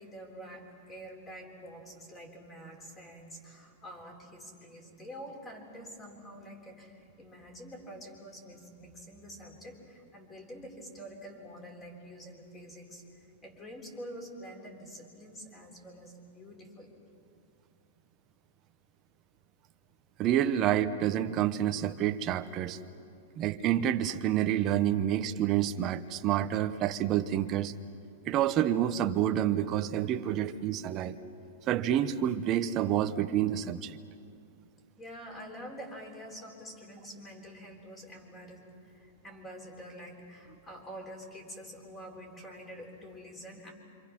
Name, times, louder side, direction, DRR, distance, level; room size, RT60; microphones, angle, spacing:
voice 1, 0.0-13.0 13.4-16.9 35.0-43.7, equal, 15° left, 2 dB, 3.8 m, -47 dB
voice 2, 20.2-22.8 23.4-27.7 28.3-31.2 31.7-34.0, right 11 dB, 25° right, 8 dB, 0.9 m, -28 dB
27.5 x 26.0 x 6.0 m, 2.5 s
supercardioid pair, 160°, 0 cm